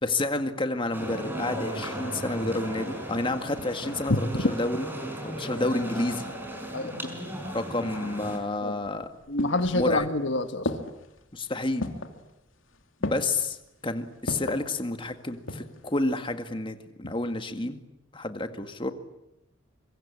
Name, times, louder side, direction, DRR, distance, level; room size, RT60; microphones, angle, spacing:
voice 1, 0.0-4.9 5.2-6.3 7.5-9.1 9.7-10.1 11.3-11.9 13.0-13.6 13.8-17.8 18.1-18.9, left 2 dB, 25° left, 7 dB, 1.9 m, -30 dB
sound 1, 0.9-8.4, equal, 10° right, 5.8 m, -35 dB
sound 2, 8.8-10.2 10.7-11.2 11.8-12.2 13.0-13.5 14.3-14.7 15.2-15.8 16.1-16.2, left 2 dB, 80° left, 2.7 m, -33 dB
voice 2, 9.3-10.7 17.0-17.1, left 2 dB, 65° left, 9 dB, 1.6 m, -27 dB
26.0 x 24.0 x 8.7 m, 0.86 s
head